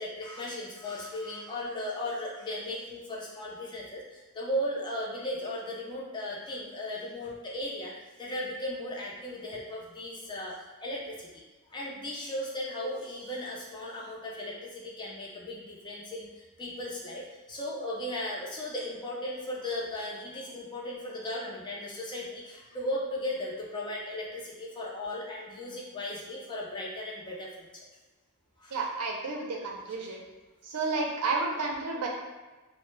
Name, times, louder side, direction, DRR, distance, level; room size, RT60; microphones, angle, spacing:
voice 1, 0.0-7.9 8.2-11.4 11.7-17.2 17.5-27.8 28.6-28.8 29.9-30.1, left 1 dB, 20° left, -4 dB, 0.4 m, -36 dB
voice 2, 28.7-30.2 30.6-32.1, right 3 dB, 90° right, 0 dB, 0.5 m, -31 dB
2.1 x 2.0 x 3.1 m, 1.2 s
head